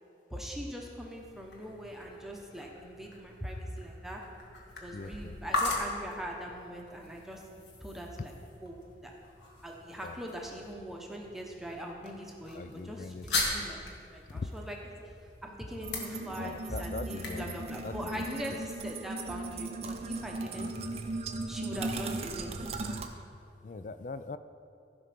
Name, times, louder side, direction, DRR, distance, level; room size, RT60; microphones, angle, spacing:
voice 1, 0.3-4.2 4.8-7.4 7.8-8.3 8.6-9.1 9.6-13.8 14.1-14.8 15.4-20.7 21.5-22.5, equal, ahead, -1 dB, 0.9 m, -41 dB
sound 1, 0.9-18.7, left 2 dB, 75° left, 1.7 m, -40 dB
voice 2, 4.9-5.4 10.0-10.2 12.5-13.5 14.3-14.5 16.4-18.2 20.6-20.7 23.6-24.4, left 3 dB, 45° left, 12 dB, 0.4 m, -41 dB
sound 2, 15.8-23.1, right 2 dB, 35° right, 0.6 m, -37 dB
15.0 x 5.2 x 5.9 m, 2.5 s
head